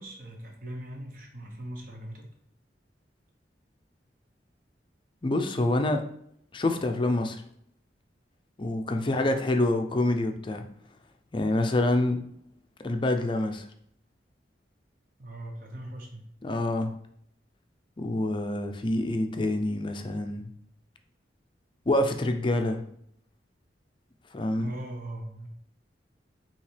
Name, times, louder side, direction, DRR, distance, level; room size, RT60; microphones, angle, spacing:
voice 1, 0.0-2.3 9.0-9.2 15.2-16.2 24.6-25.5, right 1 dB, 50° right, 1 dB, 0.9 m, -40 dB
voice 2, 5.2-6.0 6.5-7.4 8.6-10.7 11.3-12.2 12.8-13.7 16.4-16.9 18.0-20.5 21.9-22.8 24.3-24.7, left 1 dB, 25° left, 6 dB, 0.4 m, -26 dB
5.4 x 2.9 x 3.3 m, 0.69 s
head